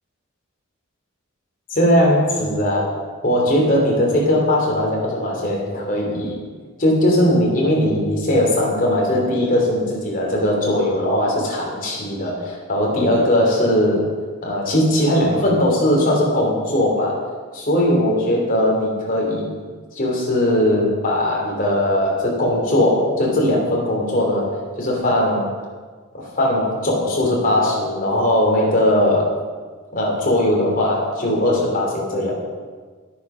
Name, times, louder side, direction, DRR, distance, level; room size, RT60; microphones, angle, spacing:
voice 1, 1.7-2.9 3.2-6.4 6.8-14.1 14.4-17.2 17.5-19.5 19.9-24.5 24.8-25.5 26.1-29.3 29.9-32.3, left 1 dB, 40° left, -2 dB, 3.1 m, -19 dB
11.0 x 9.1 x 6.1 m, 1.5 s
head